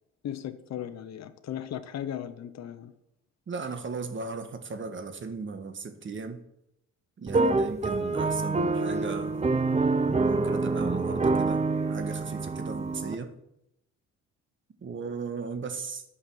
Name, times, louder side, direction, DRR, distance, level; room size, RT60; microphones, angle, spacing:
voice 1, 0.2-2.9, left 10 dB, 60° left, 10 dB, 0.9 m, -37 dB
voice 2, 3.5-6.4 7.2-9.5 10.2-13.3 14.8-16.0, right 4 dB, 40° right, 8 dB, 1.5 m, -37 dB
sound 1, 7.3-13.2, right 3 dB, 20° right, 0.9 m, -26 dB
10.0 x 5.6 x 7.6 m, 0.82 s
cardioid pair, 90°, 30 cm